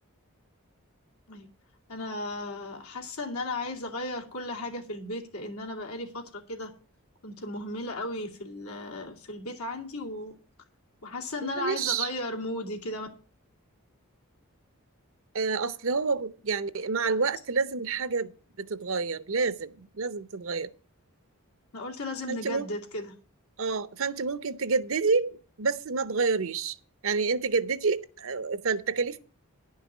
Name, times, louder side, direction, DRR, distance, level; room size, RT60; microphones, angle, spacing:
voice 1, 1.9-6.7 7.2-10.4 11.0-13.1 21.7-23.1, left 2 dB, 85° left, 2.4 m, -35 dB
voice 2, 11.4-12.1 15.3-18.3 18.6-20.7 22.3-22.7 23.6-26.8 27.0-29.2, right 4 dB, 65° right, 0.7 m, -28 dB
10.5 x 5.8 x 7.1 m
head